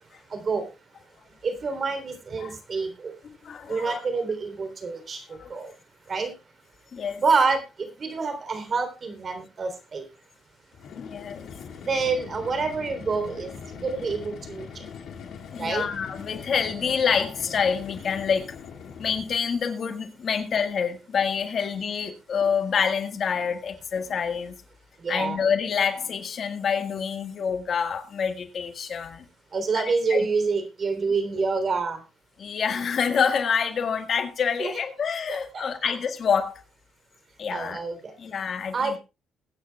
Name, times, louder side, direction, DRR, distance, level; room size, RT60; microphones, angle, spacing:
voice 1, 0.3-0.7 1.4-3.1 3.7-5.2 5.5-5.7 6.1-6.3 7.2-10.0 11.8-14.7 15.6-15.9 25.0-25.4 29.5-32.0 34.6-34.7 35.3-35.6 37.5-38.1 38.7-39.0, right 4 dB, 45° right, 3.5 m, -27 dB
voice 2, 3.4-4.0 5.4-5.6 6.9-7.2 11.0-11.5 15.5-18.4 19.0-24.5 25.1-29.2 29.7-29.8 30.1-30.3 31.3-31.4 32.4-36.6 37.4-37.8 38.2-39.0, left 6 dB, 55° left, 1.7 m, -27 dB
sound 1, 10.7-19.5, left 6 dB, 75° left, 2.4 m, -41 dB
21.5 x 9.5 x 2.4 m
cardioid pair, 90°, 0 cm